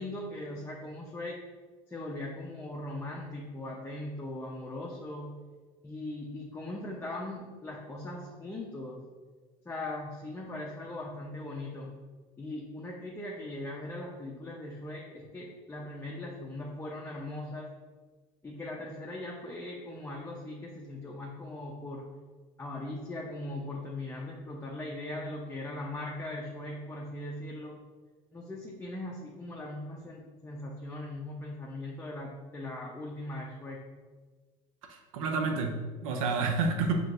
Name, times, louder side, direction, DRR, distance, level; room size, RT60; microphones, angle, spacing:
voice 1, 0.0-1.4 1.9-5.4 5.8-9.0 9.6-11.9 12.4-17.7 18.4-22.1 22.6-27.8 28.3-33.8, left 1 dB, 15° left, -3 dB, 0.7 m, -39 dB
voice 2, 34.9-36.9, right 4 dB, 85° right, 4 dB, 0.6 m, -29 dB
5.6 x 3.0 x 2.5 m, 1.4 s
hypercardioid pair, 80°, 17 cm